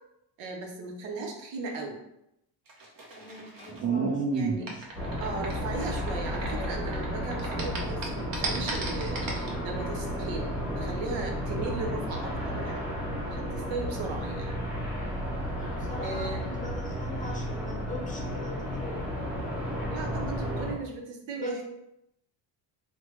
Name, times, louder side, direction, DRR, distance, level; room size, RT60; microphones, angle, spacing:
voice 1, 0.4-2.0 4.3-4.7 5.2-9.2 9.6-12.8 13.3-14.5 16.0-16.4 19.9-21.6, right 3 dB, 90° right, 2 dB, 0.8 m, -37 dB
sound 1, 2.7-7.0 7.3-9.5, right 4 dB, 50° right, 0.8 m, -31 dB
voice 2, 3.1-4.9 15.6-19.0 21.3-21.6, left 3 dB, 20° left, -1 dB, 0.6 m, -42 dB
sound 2, 4.9-20.7, equal, 5° right, 1.0 m, -33 dB
3.2 x 2.2 x 3.1 m, 0.81 s
cardioid pair, 105°, 45 cm